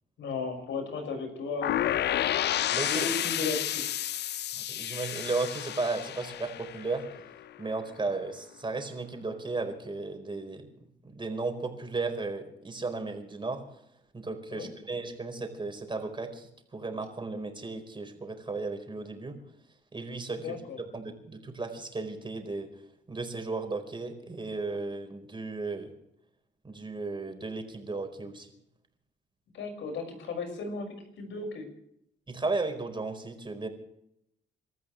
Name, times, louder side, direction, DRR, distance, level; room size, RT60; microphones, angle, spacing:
voice 1, 0.2-2.2 2.8-3.8 14.5-14.7 20.4-20.8 29.5-31.7, left 4 dB, 75° left, 5 dB, 6.1 m, -35 dB
sound 1, 1.6-7.5, left 12 dB, 60° left, 0.5 m, -31 dB
voice 2, 2.7-3.1 4.6-7.1 7.6-10.7 11.0-13.6 14.1-19.4 19.9-20.6 20.9-22.7 23.1-25.9 26.6-28.5 32.3-33.7, right 3 dB, 25° right, 5 dB, 4.5 m, -35 dB
28.5 x 14.0 x 3.3 m, 0.78 s
cardioid pair, 90°, 20 cm